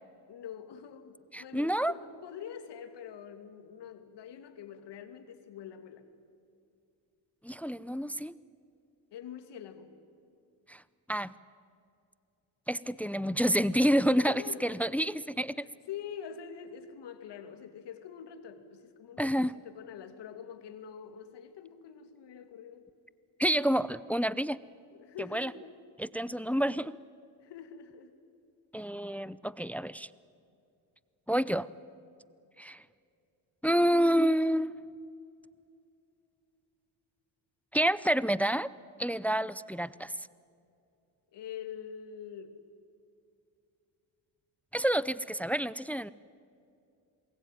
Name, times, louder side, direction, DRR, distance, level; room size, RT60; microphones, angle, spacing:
voice 1, 0.3-6.1 9.1-9.9 12.9-13.1 14.1-15.0 15.6-22.9 24.9-25.8 26.2-26.5 27.4-28.1 41.3-42.6, left 8 dB, 65° left, 8 dB, 2.7 m, -45 dB
voice 2, 1.3-1.9 7.4-8.3 10.7-10.8 11.1-11.3 12.7-15.7 19.2-19.5 23.4-24.6 25.3-25.5 26.0-27.0 28.7-30.1 31.3-31.7 32.6-32.8 33.6-34.7 37.7-38.7 39.0-40.1 44.7-46.1, equal, 5° left, 19 dB, 0.6 m, -28 dB
28.0 x 21.0 x 9.3 m, 2.5 s
supercardioid pair, 75°, 45 cm